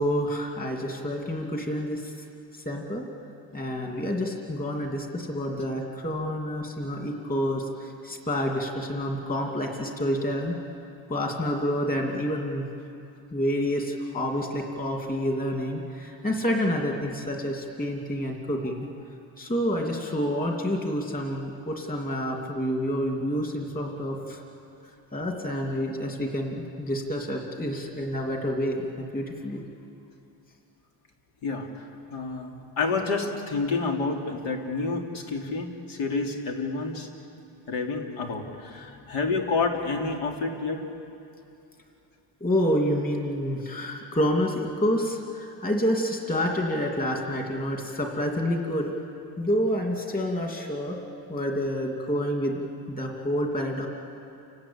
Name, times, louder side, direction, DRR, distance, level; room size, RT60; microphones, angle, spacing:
voice 1, 0.0-2.0 2.6-3.0 3.5-10.6 11.1-12.6 13.3-18.9 19.4-24.4 25.1-29.6 42.4-48.9 49.4-51.0 51.3-52.6 52.9-53.9, equal, 20° left, 1 dB, 2.7 m, -28 dB
voice 2, 32.1-37.1 37.7-40.8, left 4 dB, 85° left, 2 dB, 3.3 m, -29 dB
30.0 x 19.0 x 8.8 m, 2.6 s
cardioid pair, 170°, 45 cm